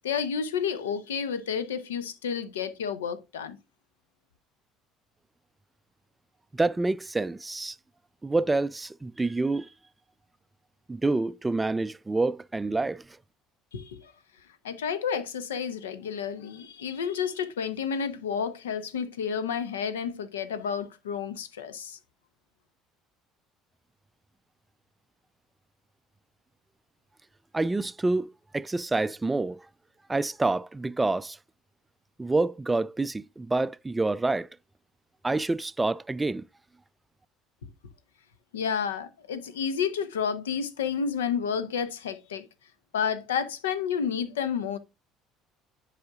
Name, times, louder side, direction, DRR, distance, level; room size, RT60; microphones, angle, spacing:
voice 1, 0.0-3.6 13.7-14.1 14.6-22.0 38.5-42.5 42.9-44.8, left 7 dB, 80° left, 0.7 m, -30 dB
voice 2, 6.6-7.8 8.2-9.7 10.9-13.0 27.5-29.6 30.1-31.4 32.2-34.5 35.2-36.4, right 2 dB, 15° right, 0.3 m, -27 dB
10.5 x 4.9 x 2.4 m
figure-of-eight pair, 60°, 0 cm